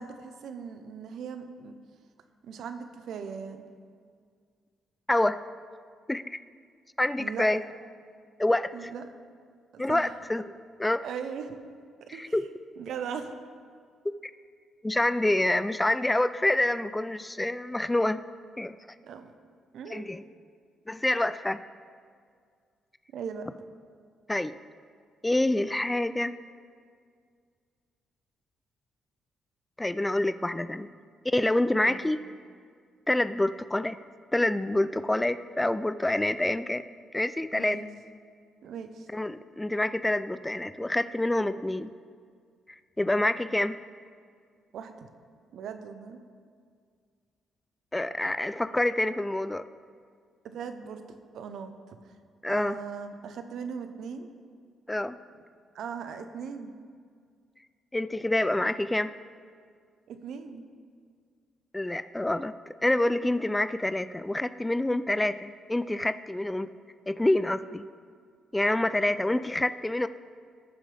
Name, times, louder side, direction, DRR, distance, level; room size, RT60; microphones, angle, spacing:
voice 1, 0.0-1.7 2.4-3.7 7.2-7.7 8.7-9.0 9.7-10.1 11.0-11.6 12.1-12.4 12.8-13.3 19.1-19.3 19.7-20.1 23.1-23.5 31.8-32.1 37.5-37.8 38.6-39.1 43.1-43.3 44.7-45.1 45.5-46.2 50.4-52.1 52.5-54.3 55.7-56.7 60.1-60.6, right 6 dB, 75° right, 8 dB, 0.8 m, -39 dB
voice 2, 5.1-5.4 6.1-6.4 7.0-7.6 8.4-8.9 9.8-10.5 10.8-11.0 12.2-12.4 14.0-14.3 14.8-18.2 18.6-18.7 19.9-20.2 20.9-21.6 24.3-24.5 25.2-26.4 29.8-30.9 31.2-32.2 33.1-34.0 34.3-36.8 37.1-37.8 39.1-41.9 42.7-43.8 47.9-49.6 52.4-52.8 54.9-55.2 57.9-59.1 61.7-66.7 67.1-67.9 68.5-70.1, left 1 dB, 10° left, 13 dB, 0.3 m, -27 dB
19.0 x 7.3 x 3.4 m, 2.1 s
cardioid pair, 90°, 0 cm